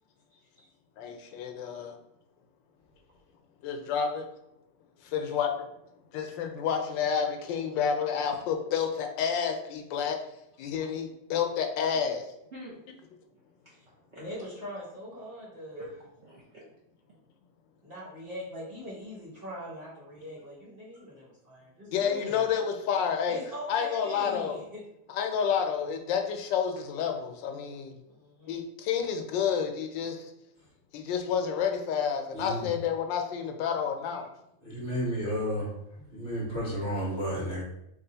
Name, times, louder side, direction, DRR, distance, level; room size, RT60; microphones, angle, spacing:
voice 1, 1.0-1.9 3.6-4.3 5.0-5.5 6.1-10.2 10.6-12.2 21.9-23.4 23.7-24.6 25.1-28.0 28.5-30.3 30.9-34.3, left 7 dB, 90° left, 5 dB, 1.3 m, -29 dB
voice 2, 12.5-12.9 13.8-14.2 15.8-16.6 20.9-21.0 21.9-22.3 34.1-34.2, right 1 dB, 55° right, -6 dB, 0.8 m, -47 dB
voice 3, 14.1-15.8 17.8-22.4 23.3-24.8 28.1-28.6, left 1 dB, 35° right, -7 dB, 1.2 m, -42 dB
voice 4, 32.3-32.7 34.6-35.7 36.1-37.6, equal, 45° left, -6 dB, 1.1 m, -32 dB
3.4 x 2.4 x 3.9 m, 0.80 s
omnidirectional pair, 1.9 m